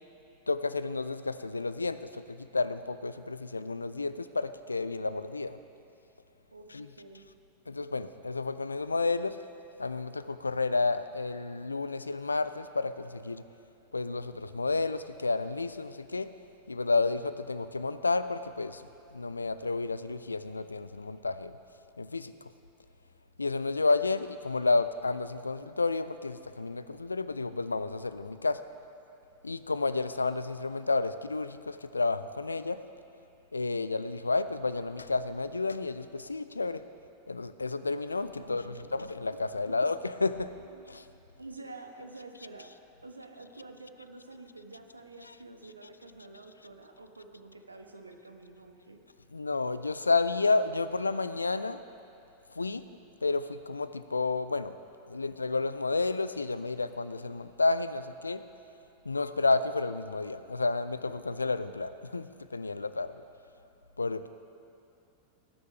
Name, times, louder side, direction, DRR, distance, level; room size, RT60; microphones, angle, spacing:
voice 1, 0.5-2.2 2.5-5.6 6.7-6.9 7.7-9.4 9.8-13.4 13.9-16.3 16.7-18.8 19.1-21.5 22.0-22.3 23.4-28.6 29.4-32.8 33.5-36.8 37.3-40.5 40.9-41.0 49.3-51.8 52.6-52.8 53.2-54.7 55.1-58.4 59.1-63.1 64.0-64.3, left 3 dB, 80° left, 13 dB, 0.4 m, -31 dB
voice 2, 6.5-7.3 38.4-39.1 39.6-39.7 40.5-40.9 41.4-42.7 43.0-49.0, right 2 dB, 80° right, 5 dB, 1.0 m, -48 dB
18.5 x 9.8 x 3.4 m, 2.7 s
figure-of-eight pair, 90°, 0 cm